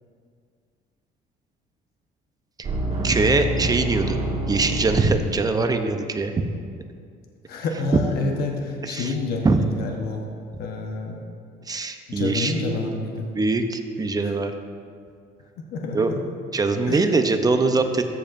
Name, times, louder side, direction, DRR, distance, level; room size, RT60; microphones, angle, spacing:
sound 1, 2.6-5.5, right 1 dB, 40° right, 1.8 m, -27 dB
voice 1, 3.0-4.2 4.5-6.3 8.8-9.1 9.4-9.6 11.7-12.8 13.3-14.5 15.9-16.1 16.5-18.0, right 3 dB, 20° right, 7 dB, 0.6 m, -22 dB
voice 2, 7.5-10.2 10.6-11.2 12.1-13.3 14.2-14.3 15.6-16.2 16.9-17.1, left 3 dB, 70° left, 1 dB, 1.0 m, -29 dB
14.0 x 7.5 x 2.6 m, 2.2 s
cardioid pair, 110°, 17 cm